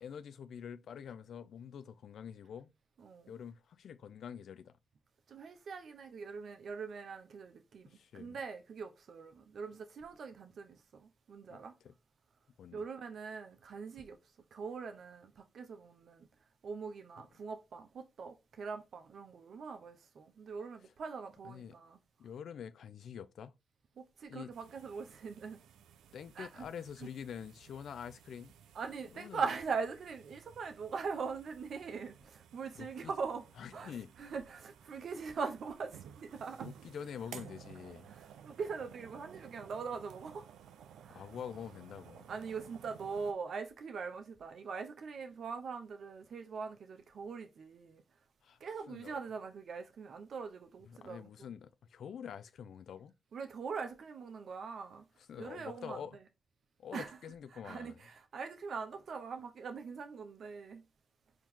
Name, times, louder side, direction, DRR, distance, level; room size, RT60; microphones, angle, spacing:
voice 1, 0.0-2.7 3.3-4.8 7.9-8.4 11.5-11.9 12.6-12.8 21.4-21.7 22.2-23.5 24.3-24.5 26.1-28.5 29.1-29.4 32.8-33.1 33.6-34.1 36.6-38.1 41.1-42.3 48.4-48.6 48.9-49.2 50.8-53.1 55.3-56.2 56.8-58.0, left 8 dB, 75° left, 0.3 m, -46 dB
voice 2, 3.0-3.3 5.3-11.7 12.7-14.2 14.5-16.3 16.6-22.0 24.0-25.6 26.3-26.7 27.0-27.1 28.7-33.5 33.7-36.7 38.1-40.5 41.0-41.2 42.3-48.0 48.6-51.5 53.3-55.1 55.4-56.2 56.9-57.2 57.5-60.8, right 5 dB, 70° right, 0.7 m, -42 dB
sound 1, 24.5-43.3, right 9 dB, 85° right, 0.3 m, -56 dB
4.3 x 2.9 x 3.6 m
supercardioid pair, 40°, 0 cm